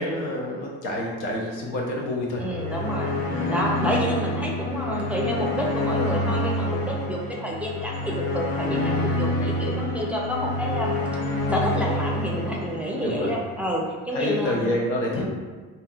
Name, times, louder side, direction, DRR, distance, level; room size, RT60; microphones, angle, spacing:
voice 1, 0.0-2.4 3.3-3.6 13.0-13.3 14.1-15.2, left 1 dB, 85° left, -2 dB, 0.8 m, -28 dB
sound 1, 2.3-13.6, left 1 dB, 50° left, 0.6 m, -27 dB
voice 2, 2.4-3.1 3.5-11.0 11.5-14.7 15.1-15.2, equal, 5° right, -2 dB, 0.5 m, -29 dB
3.4 x 2.8 x 2.3 m, 1.4 s
cardioid pair, 90°, 30 cm